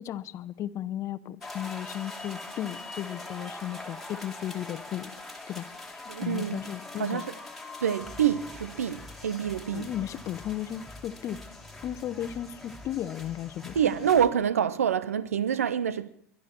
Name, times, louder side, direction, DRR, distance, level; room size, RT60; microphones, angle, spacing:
voice 1, 0.0-5.1 5.5-5.7 6.2-7.2 9.7-11.4 11.8-13.7, left 11 dB, 40° left, 0.8 m, -35 dB
sound 1, 1.4-14.3, left 2 dB, ahead, 2.4 m, -43 dB
voice 2, 6.1-6.6 7.0-7.3 7.8-9.9 13.7-16.1, right 8 dB, 90° right, 0.6 m, -26 dB
22.5 x 12.0 x 4.5 m
hypercardioid pair, 90°, 8 cm